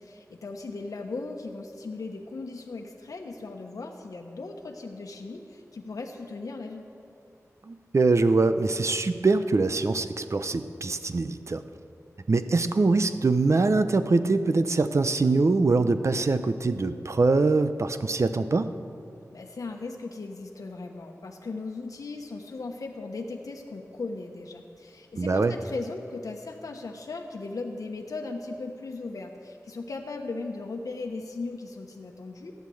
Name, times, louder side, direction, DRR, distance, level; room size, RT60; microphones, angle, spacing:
voice 1, 0.0-6.9 19.3-32.5, left 3 dB, 85° left, 2 dB, 1.1 m, -37 dB
voice 2, 7.6-11.6 12.3-18.7 25.2-25.5, right 3 dB, 55° right, 10 dB, 0.7 m, -23 dB
15.0 x 10.5 x 7.8 m, 2.5 s
wide cardioid pair, 65°, 6 cm